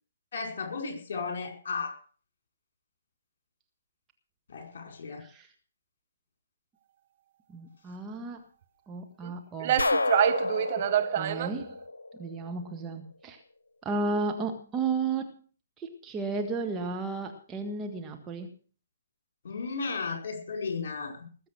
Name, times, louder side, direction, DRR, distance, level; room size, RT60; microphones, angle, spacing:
voice 1, 0.3-2.0 4.5-5.2 19.4-21.3, left 4 dB, 50° left, 4 dB, 5.0 m, -34 dB
voice 2, 7.5-8.4 8.9-9.8 11.0-11.8 12.2-13.4 13.8-15.4 15.8-18.5, right 3 dB, 15° right, 3 dB, 1.6 m, -33 dB
sound 1, 9.2-9.3 9.6-11.6, right 11 dB, 40° right, 1.0 m, -26 dB
sound 2, 9.8-12.6, left 2 dB, 70° left, 1.2 m, -30 dB
20.0 x 7.8 x 6.3 m, 0.41 s
figure-of-eight pair, 130°, 0 cm